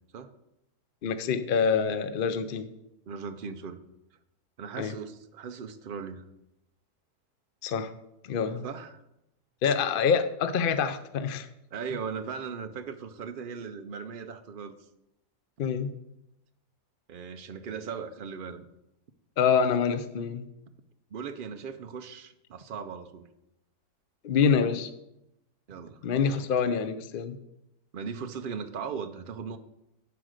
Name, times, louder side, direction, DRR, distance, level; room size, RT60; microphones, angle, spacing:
voice 1, 1.0-2.7 4.8-4.9 7.6-7.9 8.2-8.6 9.6-11.5 15.6-15.9 19.4-20.4 24.2-24.9 26.0-27.4, left 6 dB, 85° left, 11 dB, 0.4 m, -26 dB
voice 2, 3.1-3.8 4.6-6.3 8.6-9.0 9.6-9.7 11.7-14.7 17.1-18.7 21.1-23.3 25.7-26.0 27.9-29.6, right 6 dB, 70° right, 9 dB, 0.5 m, -38 dB
10.5 x 5.0 x 6.4 m, 0.85 s
omnidirectional pair, 1.7 m